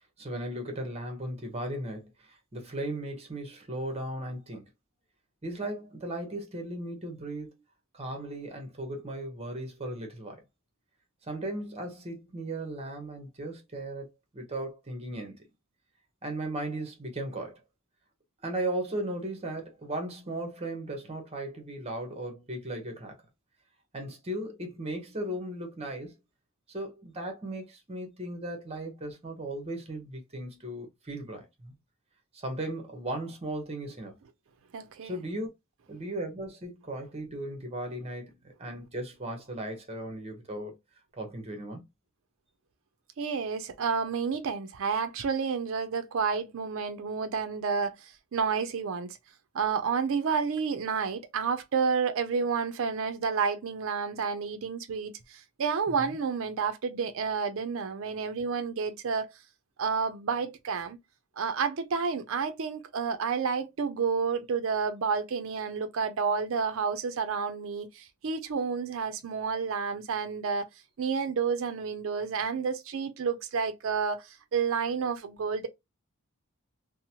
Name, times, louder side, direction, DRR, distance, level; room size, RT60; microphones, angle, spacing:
voice 1, 0.2-4.7 5.4-7.5 7.9-10.4 11.2-15.5 16.2-17.6 18.4-23.2 23.9-26.1 26.7-31.7 32.3-34.2 35.0-35.5 35.9-40.8 41.1-41.9 56.0-56.2, right 1 dB, 30° right, 0.8 m, -37 dB
voice 2, 34.7-35.2 43.2-49.2 49.5-59.3 59.8-61.0 61.4-70.7 71.0-75.7, right 5 dB, 65° right, 0.4 m, -30 dB
2.8 x 2.0 x 2.7 m
head